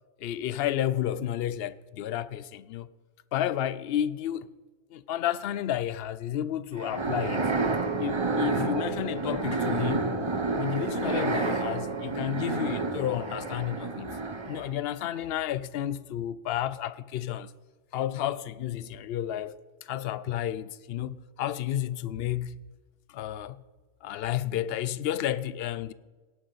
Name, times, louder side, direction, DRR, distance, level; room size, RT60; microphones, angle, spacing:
voice 1, 0.2-2.9 3.3-4.5 4.9-7.5 8.0-10.2 10.6-14.1 14.5-17.5 17.9-22.6 23.1-23.6 24.0-25.9, left 11 dB, 65° left, 0.7 m, -31 dB
sound 1, 6.8-14.8, right 3 dB, 30° right, 0.8 m, -29 dB
18.0 x 11.0 x 4.0 m
omnidirectional pair, 1.2 m